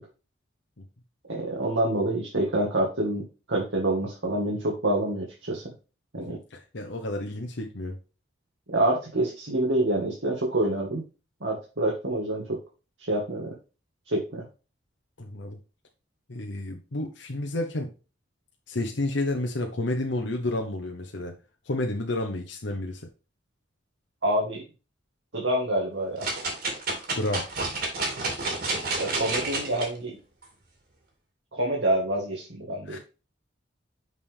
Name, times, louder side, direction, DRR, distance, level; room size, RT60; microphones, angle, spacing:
voice 1, 1.3-3.2 3.5-5.6 6.1-6.4 8.7-11.0 11.4-12.6 13.1-13.5 14.1-14.4 24.2-24.6 25.3-26.2 29.0-30.2 31.5-33.0, right 1 dB, 80° right, -2 dB, 1.7 m, -27 dB
voice 2, 6.3-8.0 15.2-15.6 16.3-17.9 18.7-21.4 21.7-23.1 27.1-27.5 32.9-33.0, left 2 dB, 70° left, 3 dB, 0.9 m, -30 dB
sound 1, 26.2-29.9 30.4-30.5, right 3 dB, 55° right, 2.4 m, -30 dB
6.6 x 5.5 x 3.5 m, 0.32 s
head